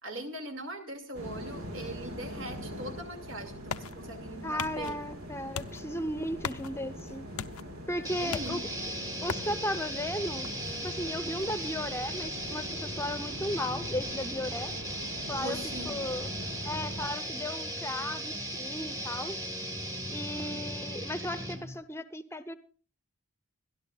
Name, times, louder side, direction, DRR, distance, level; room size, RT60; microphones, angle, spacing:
voice 1, 0.0-5.0 8.2-9.0 15.3-16.0 20.0-20.6, right 1 dB, 65° right, 4 dB, 2.4 m, -41 dB
sound 1, 1.1-17.1, equal, 80° right, 1.9 m, -43 dB
sound 2, 3.0-14.4, left 6 dB, 80° left, 0.6 m, -44 dB
voice 2, 4.4-7.2 7.9-8.6 9.2-10.5 10.8-14.7 15.3-15.6 15.8-16.3 16.7-19.4 20.1-22.5, left 1 dB, 10° left, 10 dB, 0.8 m, -35 dB
sound 3, 8.0-21.8, right 1 dB, 15° right, 1.5 m, -37 dB
25.5 x 11.5 x 2.4 m, 0.36 s
head